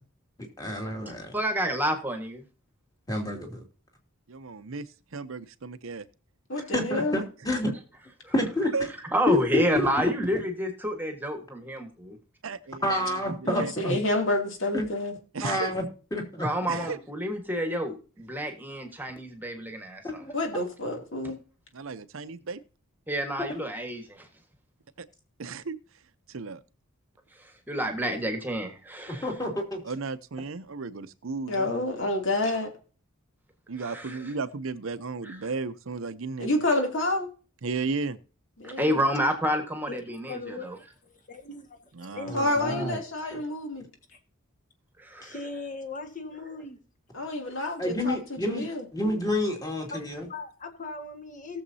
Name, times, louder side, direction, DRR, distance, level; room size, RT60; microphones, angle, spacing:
voice 1, 0.6-1.3 3.1-3.6 6.7-7.7 8.3-8.7 9.3-9.6 10.0-10.4 12.8-13.9 14.7-14.9 15.4-15.8 16.1-16.5 20.0-20.3 23.5-23.6 29.1-29.8 42.3-43.0 43.3-43.4 47.8-48.7 48.9-50.3, left 1 dB, 20° left, 2.6 m, -29 dB
voice 2, 1.3-2.4 8.2-8.3 9.1-12.2 16.4-20.2 23.1-24.3 27.7-29.3 33.8-34.2 35.3-35.4 38.6-40.8 45.0-45.3, equal, 10° right, 1.5 m, -29 dB
voice 3, 4.3-6.1 8.7-8.9 12.4-12.8 13.3-13.7 15.3-15.7 16.7-17.0 21.7-22.6 25.0-25.1 25.4-25.8 26.3-26.6 29.8-31.7 33.7-36.6 37.6-38.2 41.9-42.3 42.6-43.0, right 4 dB, 70° right, 0.7 m, -34 dB
voice 4, 6.5-7.2 13.4-15.1 20.3-21.4 31.5-32.7 36.4-37.3 38.6-39.0 42.3-43.8 47.1-48.8, left 1 dB, 60° left, 2.7 m, -28 dB
voice 5, 40.3-42.6 44.1-44.2 45.2-46.8 47.6-47.7 49.9-50.0 50.3-51.6, left 3 dB, 35° left, 1.7 m, -39 dB
18.5 x 7.2 x 2.8 m
head